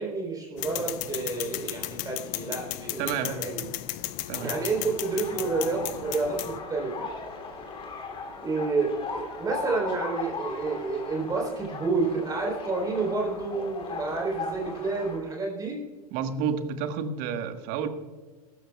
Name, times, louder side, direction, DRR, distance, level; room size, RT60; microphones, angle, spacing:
voice 1, 0.0-3.7 4.4-7.1 8.4-15.8, right 3 dB, 20° right, -1 dB, 3.6 m, -29 dB
sound 1, 0.6-6.6, left 16 dB, 45° left, 0.8 m, -35 dB
voice 2, 3.0-3.3 4.3-4.5 16.1-17.9, right 7 dB, 45° right, 9 dB, 1.4 m, -30 dB
sound 2, 4.3-15.2, left 4 dB, 30° left, 2.8 m, -38 dB
22.5 x 12.5 x 2.3 m, 1.4 s
figure-of-eight pair, 90°, 20 cm